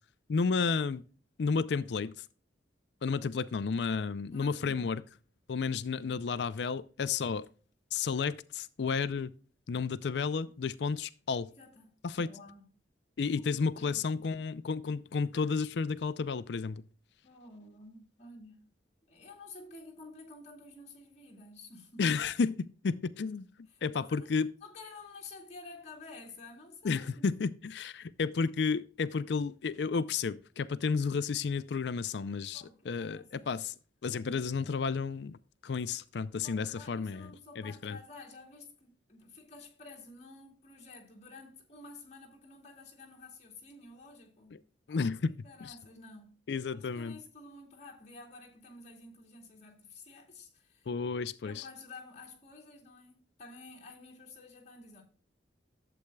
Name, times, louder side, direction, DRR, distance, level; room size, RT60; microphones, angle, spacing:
voice 1, 0.3-1.0 1.4-2.1 3.0-5.0 5.5-7.5 7.9-9.3 9.7-11.5 12.0-12.3 13.2-16.8 22.0-23.5 23.8-24.5 26.8-33.7 34.0-38.0 44.9-45.3 45.6-45.7 46.5-47.2 50.9-51.6, left 5 dB, 65° left, 0.4 m, -32 dB
voice 2, 4.3-5.0 11.6-12.6 13.8-14.3 17.2-18.6 19.1-22.2 23.7-24.2 24.6-27.2 32.5-33.6 36.4-44.6 44.9-46.3 46.7-50.9 51.4-55.0, left 3 dB, 40° left, 2.3 m, -51 dB
11.5 x 7.8 x 2.3 m
head